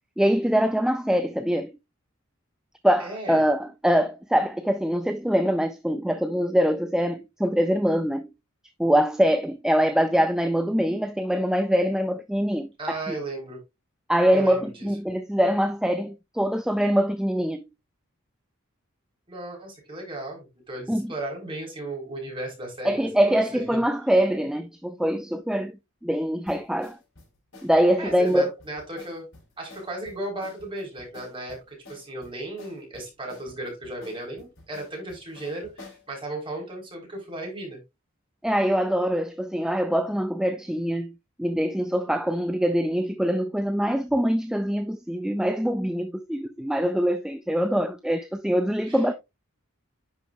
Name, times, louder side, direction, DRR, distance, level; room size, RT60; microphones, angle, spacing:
voice 1, 0.2-1.7 2.8-8.3 8.8-13.2 14.1-17.6 20.9-21.1 22.8-25.7 26.0-27.0 27.6-28.5 38.4-41.1 41.4-49.1, equal, 5° right, 0.3 m, -23 dB
voice 2, 3.0-3.4 12.8-13.6 14.3-14.9 19.3-23.8 28.0-29.3 29.6-37.8 48.9-49.0, right 2 dB, 25° right, 3.5 m, -35 dB
sound 1, 26.5-36.1, left 3 dB, 65° left, 3.8 m, -49 dB
10.5 x 5.0 x 2.3 m
head